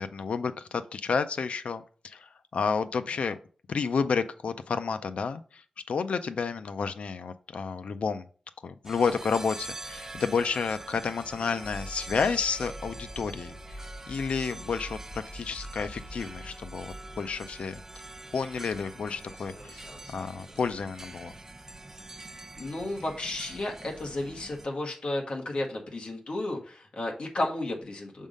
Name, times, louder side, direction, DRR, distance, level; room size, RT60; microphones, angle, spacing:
voice 1, 0.0-3.4 3.7-8.3 8.6-13.6 14.1-17.8 18.3-21.3, left 5 dB, 90° left, 10 dB, 0.4 m, -31 dB
sound 1, 8.8-24.7, right 2 dB, 20° right, 0.5 m, -45 dB
sound 2, 11.6-18.8 19.2-20.6, equal, 25° left, 3.2 m, -46 dB
voice 2, 22.6-28.3, left 2 dB, 60° left, 1 dB, 1.5 m, -33 dB
6.3 x 3.6 x 5.2 m, 0.41 s
wide cardioid pair, 140°, 2 cm